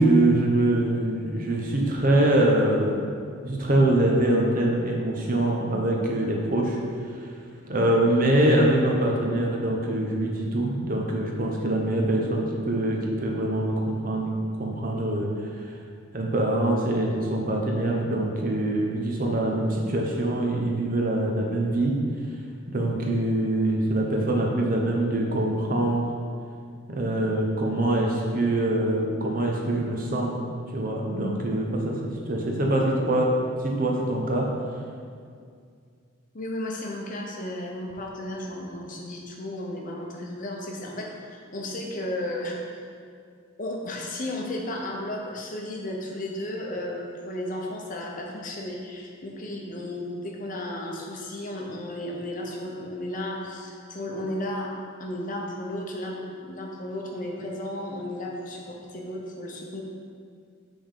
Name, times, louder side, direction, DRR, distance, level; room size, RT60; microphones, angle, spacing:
voice 1, 0.0-3.0 3.4-6.8 7.7-15.3 15.6-15.7 16.1-21.9 22.7-26.1 26.9-30.4 30.7-33.3 33.6-34.5, right 1 dB, 40° right, -1 dB, 0.8 m, -24 dB
voice 2, 36.3-42.9 43.6-54.7 55.0-59.8, left 1 dB, 40° left, 0 dB, 0.7 m, -34 dB
5.3 x 3.6 x 5.6 m, 2.2 s
head